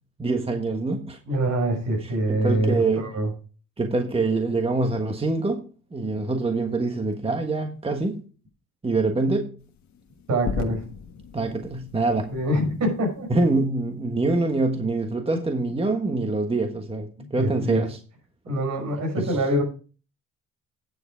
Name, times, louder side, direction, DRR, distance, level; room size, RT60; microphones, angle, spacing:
voice 1, 0.2-1.2 2.3-3.1 3.8-8.2 8.8-9.5 11.3-12.3 13.3-18.0 19.1-19.4, right 3 dB, 20° right, 1.3 m, -25 dB
voice 2, 1.3-3.3 10.3-10.8 12.3-13.3 17.2-17.8 18.4-19.6, right 1 dB, 65° right, 5.6 m, -25 dB
Breaking the sound barrier, 9.6-13.9, left 6 dB, 65° left, 1.4 m, -37 dB
9.6 x 6.9 x 5.0 m
cardioid pair, 90°, 30 cm